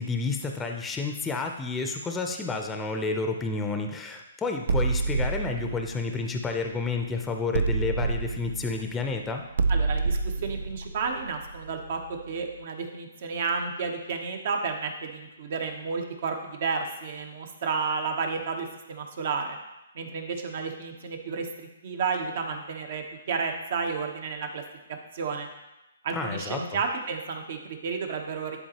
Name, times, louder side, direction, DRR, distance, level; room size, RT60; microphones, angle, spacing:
voice 1, 0.0-9.4 26.1-26.8, left 3 dB, 10° left, 4 dB, 0.6 m, -30 dB
sound 1, 4.7-7.0 7.5-12.2, right 3 dB, 70° right, 0.4 m, -28 dB
voice 2, 9.7-12.0 12.3-19.6 19.9-24.6 25.1-25.5 26.0-28.6, right 5 dB, 55° right, 4 dB, 1.0 m, -31 dB
10.5 x 4.1 x 2.9 m, 0.99 s
hypercardioid pair, 140°, 0 cm